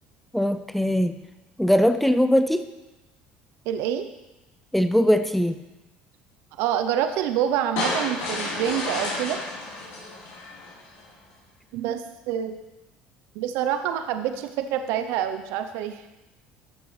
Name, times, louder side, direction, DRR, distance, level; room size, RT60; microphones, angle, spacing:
voice 1, 0.3-1.2 1.6-2.7 4.7-5.6, equal, 5° left, 10 dB, 0.5 m, -21 dB
voice 2, 3.7-4.1 6.6-9.4 11.7-12.6 13.3-16.1, right 10 dB, 70° right, 8 dB, 0.6 m, -27 dB
sound 1, 7.8-11.0, left 2 dB, 75° left, 3.7 m, -31 dB
13.5 x 7.0 x 3.2 m, 1.0 s
hypercardioid pair, 75°, 4 cm